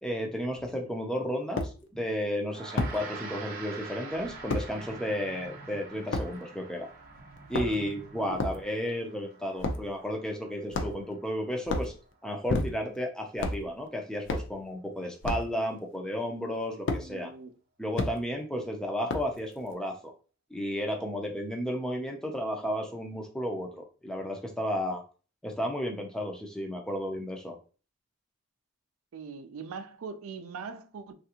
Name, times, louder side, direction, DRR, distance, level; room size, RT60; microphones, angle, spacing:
voice 1, 0.0-6.9 7.5-11.9 12.2-17.3 17.8-20.1 20.5-25.0 25.4-27.6, equal, 5° left, 0.4 m, -33 dB
sound 1, 0.6-0.7 1.6-1.7 2.8-3.0 4.5-4.7 6.1-6.3 7.4-7.9 8.4-8.6 9.6-9.9 10.7-11.1 11.6-11.9 12.5-13.0 13.4-13.6 14.3-14.5 15.2-15.5 16.9-17.0 17.9-18.1 19.1-19.4, left 2 dB, 60° left, 0.5 m, -30 dB
Gong, 2.4-12.1, right 4 dB, 40° right, 0.6 m, -46 dB
sound 2, 4.1-9.0 9.6-9.7, right 2 dB, 80° left, 0.9 m, -52 dB
voice 2, 17.0-17.5 18.6-18.7 29.1-31.1, right 5 dB, 85° right, 0.4 m, -41 dB
3.3 x 2.5 x 2.8 m
head